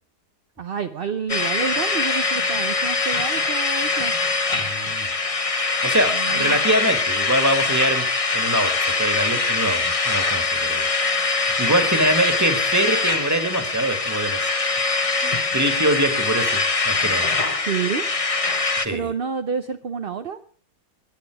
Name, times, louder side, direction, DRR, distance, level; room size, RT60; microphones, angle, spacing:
voice 1, 0.6-4.1 6.1-6.6 17.6-18.0 18.9-20.4, right 6 dB, 50° right, 8 dB, 0.7 m, -29 dB
sound 1, 1.3-18.9, left 3 dB, 25° left, 0.9 m, -23 dB
voice 2, 4.5-5.1 5.8-8.1 8.3-10.9 11.4-14.6 15.0-17.3 18.8-19.1, right 1 dB, 10° right, 7 dB, 1.9 m, -24 dB
22.0 x 10.5 x 4.8 m, 0.43 s
omnidirectional pair, 1.8 m